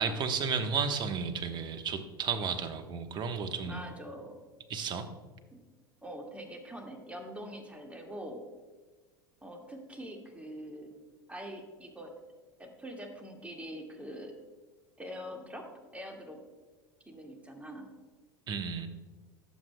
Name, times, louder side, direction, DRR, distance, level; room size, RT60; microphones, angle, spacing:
voice 1, 0.0-3.8 4.7-5.1 18.5-18.9, right 6 dB, 40° right, 7 dB, 1.2 m, -33 dB
voice 2, 3.6-4.4 5.5-5.6 6.0-8.5 9.4-10.9 11.3-12.2 12.6-14.4 15.0-16.4 17.1-17.9, equal, 10° right, 2 dB, 2.0 m, -44 dB
19.5 x 7.8 x 2.3 m, 1.3 s
hypercardioid pair, 80°, 12 cm